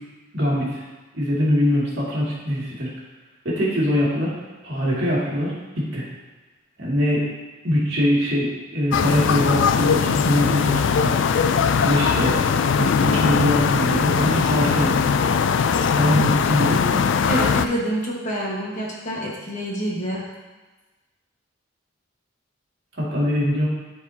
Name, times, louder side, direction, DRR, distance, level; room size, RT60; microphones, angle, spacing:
voice 1, 0.3-0.8 1.1-2.9 3.4-4.3 4.6-6.0 6.8-7.2 7.6-11.4 11.8-12.4 12.8-15.2 15.9-17.1 23.0-23.7, equal, 60° right, -7 dB, 2.4 m, -22 dB
sound 1, 8.9-17.7, left 6 dB, 65° left, 0.3 m, -20 dB
voice 2, 17.3-20.3, right 1 dB, 40° left, -4 dB, 1.4 m, -27 dB
12.5 x 4.6 x 2.8 m, 1.2 s
head